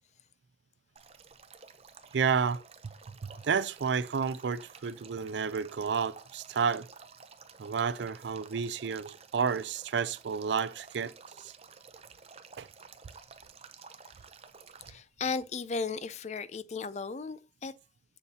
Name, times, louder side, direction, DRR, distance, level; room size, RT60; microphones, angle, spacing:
Male speech man speaking / Stream / Trickle dribble, 1.0-14.9, right 5 dB, 35° right, 0.6 m, -53 dB
voice 1, 2.1-2.6 3.2-6.9 7.6-11.1 11.4-11.5 12.6-12.7, right 6 dB, 80° right, 0.4 m, -31 dB
voice 2, 14.9-17.7, left 4 dB, 40° left, 0.4 m, -35 dB
7.1 x 6.8 x 2.8 m
head